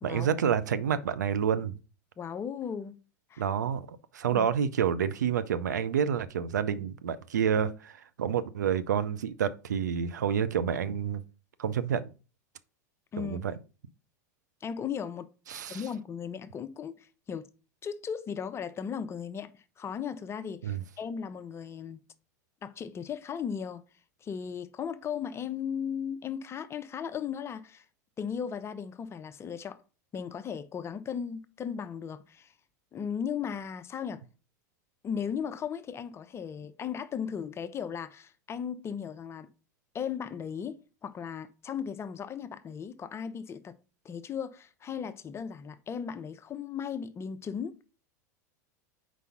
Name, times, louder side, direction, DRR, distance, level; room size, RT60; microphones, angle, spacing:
voice 1, 0.0-1.7 3.4-11.2 11.6-12.1 13.2-13.5 15.5-15.8 20.6-20.8, right 8 dB, 90° right, 0.5 m, -29 dB
voice 2, 2.2-3.0 3.3-3.4 4.3-4.5 13.1-13.4 14.6-15.3 15.7-17.5 17.8-22.0 22.6-23.8 24.2-27.8 28.2-29.8 30.1-32.5 32.9-34.2 35.0-39.5 39.9-40.8 41.0-43.8 44.0-47.9, left 7 dB, 30° left, 0.6 m, -36 dB
4.7 x 4.1 x 5.6 m
hypercardioid pair, 95°, 9 cm